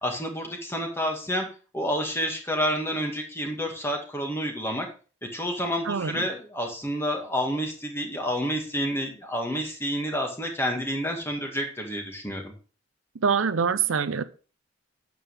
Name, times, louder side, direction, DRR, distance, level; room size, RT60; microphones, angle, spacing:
voice 1, 0.0-1.5 1.7-4.9 5.2-12.5, equal, 10° left, 2 dB, 1.9 m, -29 dB
voice 2, 5.8-6.2 13.2-14.2, right 6 dB, 85° right, 13 dB, 0.6 m, -24 dB
9.1 x 7.6 x 3.4 m, 0.36 s
head